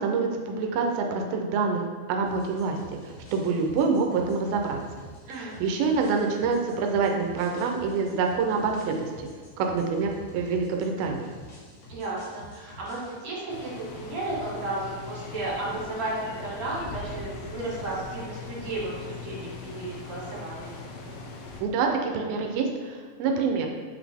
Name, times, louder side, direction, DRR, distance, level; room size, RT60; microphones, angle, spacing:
voice 1, 0.0-2.8 3.0-4.8 5.4-9.3 9.6-11.3 21.6-23.7, right 4 dB, 85° right, 2 dB, 2.4 m, -26 dB
sound 1, 2.2-13.2, equal, 60° left, 2.7 m, -48 dB
voice 2, 5.3-5.6 11.9-20.8, right 2 dB, 55° right, -6 dB, 2.8 m, -33 dB
sound 2, 13.5-21.6, left 4 dB, 80° left, 2.4 m, -40 dB
8.7 x 4.0 x 3.5 m, 1.5 s
omnidirectional pair, 4.2 m